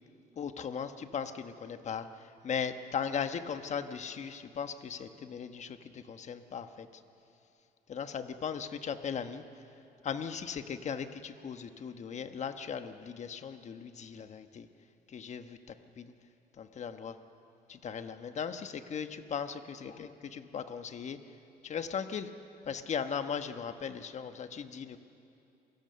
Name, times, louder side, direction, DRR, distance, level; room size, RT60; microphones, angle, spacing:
voice 1, 0.4-6.9 7.9-9.4 10.0-14.7 15.1-15.6 16.0-16.1 16.6-17.2 17.7-21.2 21.6-22.3 22.7-25.0, left 7 dB, 45° left, 9 dB, 1.2 m, -38 dB
27.5 x 17.5 x 6.9 m, 2.7 s
cardioid pair, 110°, 17 cm